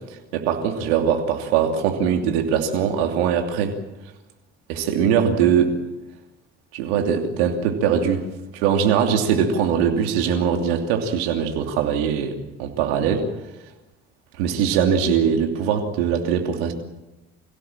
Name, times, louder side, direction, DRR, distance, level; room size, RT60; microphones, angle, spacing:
voice 1, 0.3-3.8 4.7-5.7 6.7-8.2 8.5-13.3 14.4-16.7, right 7 dB, 85° right, 4 dB, 2.9 m, -21 dB
27.0 x 17.0 x 7.5 m, 0.98 s
hypercardioid pair, 65°, 31 cm